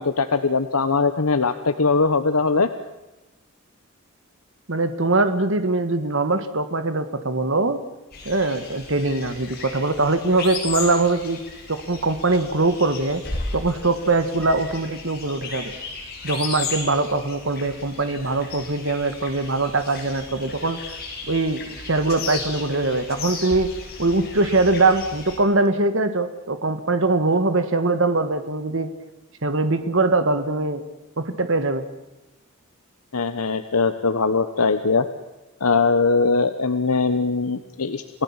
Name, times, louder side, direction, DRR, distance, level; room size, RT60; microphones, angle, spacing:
voice 1, 0.0-2.7 33.1-35.1 35.6-38.2, left 4 dB, 85° left, 9 dB, 1.2 m, -21 dB
voice 2, 4.7-7.8 8.2-11.4 11.7-13.2 13.5-15.7 16.2-20.8 21.3-23.7 24.0-28.9 29.4-30.8 31.2-31.8, right 2 dB, 60° right, 10 dB, 1.5 m, -22 dB
sound 1, 8.1-25.4, left 4 dB, 45° left, 7.0 m, -35 dB
29.0 x 17.0 x 7.3 m, 1.0 s
head